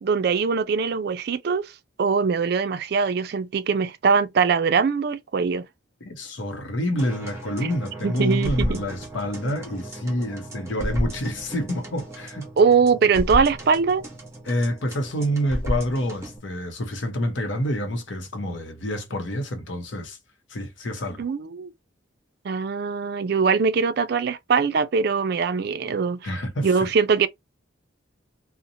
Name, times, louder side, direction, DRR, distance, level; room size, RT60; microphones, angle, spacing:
voice 1, 0.0-1.7 2.0-5.6 8.0-8.8 12.6-14.0 21.2-21.7 22.4-26.3 26.6-27.3, right 5 dB, 55° right, 0.4 m, -22 dB
voice 2, 6.0-12.5 14.4-20.2 20.5-21.2 26.2-26.9, equal, 75° left, 0.7 m, -27 dB
sound 1, 7.0-16.4, equal, 15° right, 0.8 m, -33 dB
2.7 x 2.0 x 2.6 m
head